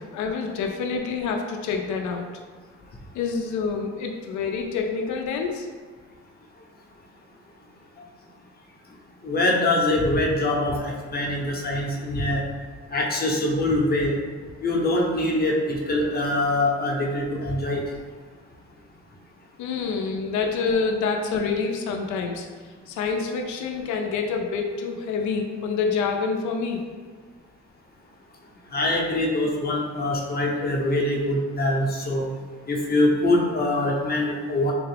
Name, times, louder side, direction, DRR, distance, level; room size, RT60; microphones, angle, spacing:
voice 1, 0.0-2.3 3.1-5.7 19.6-22.5 22.9-26.8, left 5 dB, 75° left, 2 dB, 0.5 m, -27 dB
voice 2, 9.2-12.4 12.9-14.1 14.6-17.8 28.7-32.3 32.7-34.7, left 1 dB, 30° left, -1 dB, 0.7 m, -23 dB
3.6 x 2.4 x 3.3 m, 1.5 s
cardioid pair, 90°, 30 cm